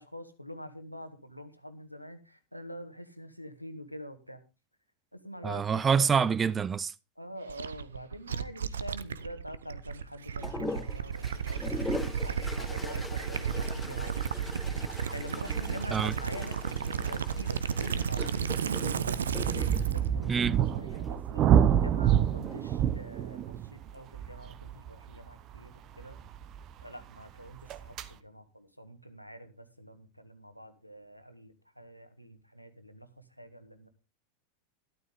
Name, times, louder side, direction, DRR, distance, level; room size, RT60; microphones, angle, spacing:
voice 1, 0.0-4.4 5.1-6.3 7.2-11.7 12.2-14.7 15.1-18.5 19.5-26.2 26.8-33.9, equal, 90° left, 1.6 m, -46 dB
voice 2, 5.4-6.9 15.9-16.1 20.3-20.6, right 6 dB, 20° right, 0.5 m, -26 dB
Gurgling / Liquid, 7.5-20.1, right 7 dB, 65° right, 0.7 m, -33 dB
sound 1, 10.4-21.1 22.3-22.9, left 2 dB, 5° left, 1.4 m, -41 dB
sound 2, 11.5-11.6 12.0-12.5 14.4-14.5 14.9-15.0 15.2-15.3 15.4-16.7 17.2-27.2 27.5-28.1, right 10 dB, 35° right, 0.9 m, -29 dB
12.5 x 12.0 x 3.6 m
figure-of-eight pair, 90°, 0 cm